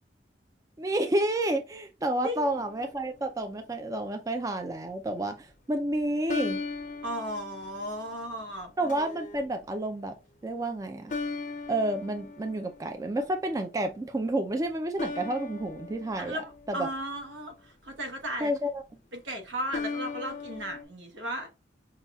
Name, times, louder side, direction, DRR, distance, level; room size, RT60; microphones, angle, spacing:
voice 1, 0.8-6.6 8.8-10.1 10.4-11.1 11.7-16.4 16.7-16.9 18.4-18.8, right 1 dB, 20° right, 0.3 m, -30 dB
voice 2, 2.2-2.6 7.0-8.7 16.2-18.5 19.1-21.5, equal, 85° right, 1.0 m, -35 dB
sound 1, 2.5-3.3 6.3-8.3 8.9-9.4 11.1-13.1 15.0-17.4 19.7-20.8, left 4 dB, 40° left, 0.5 m, -38 dB
5.6 x 2.2 x 2.3 m
head